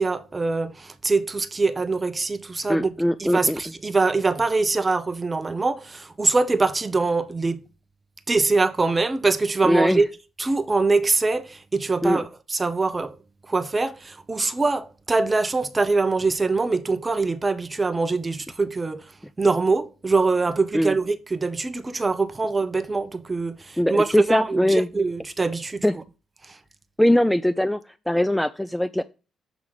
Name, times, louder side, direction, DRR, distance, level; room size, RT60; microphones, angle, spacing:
voice 1, 0.0-2.9 3.2-7.6 8.3-10.1 10.4-13.2 13.5-19.0 19.4-26.0 26.5-26.6, right 3 dB, 25° right, 0.7 m, -23 dB
voice 2, 2.7-3.6 9.6-10.0 12.0-12.2 20.7-20.9 23.8-24.9 25.8-25.9 27.0-27.8 28.1-29.0, equal, 5° left, 0.3 m, -21 dB
7.1 x 3.9 x 4.8 m
cardioid pair, 90°, 0 cm